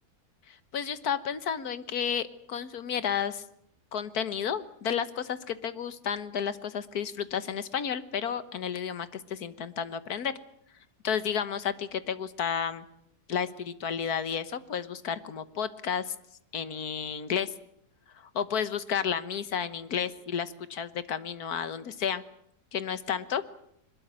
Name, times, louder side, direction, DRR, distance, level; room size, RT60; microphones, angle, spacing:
voice 1, 0.5-3.4 3.9-10.3 11.0-12.8 13.3-16.1 16.5-17.5 18.1-22.2 22.7-23.5, left 8 dB, 70° left, 14 dB, 1.7 m, -32 dB
22.5 x 21.0 x 8.9 m, 0.73 s
omnidirectional pair, 1.7 m